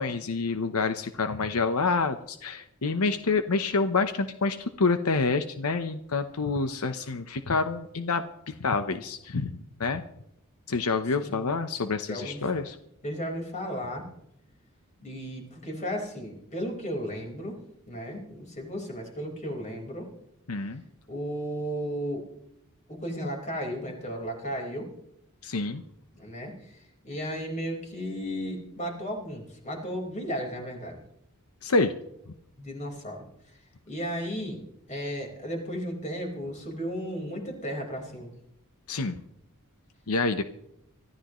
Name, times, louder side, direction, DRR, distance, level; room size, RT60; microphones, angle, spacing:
voice 1, 0.0-10.0 10.7-12.8 20.5-20.8 25.4-25.8 31.6-31.9 38.9-39.2 40.1-40.4, left 4 dB, 85° left, 9 dB, 0.9 m, -27 dB
voice 2, 11.2-11.6 12.1-12.4 13.0-14.1 15.0-17.6 17.9-20.1 21.1-22.2 22.9-24.9 26.1-26.8 27.0-31.0 32.6-33.2 33.9-34.6 34.9-38.3, equal, 35° left, 1 dB, 4.6 m, -34 dB
24.5 x 14.0 x 3.1 m, 0.76 s
head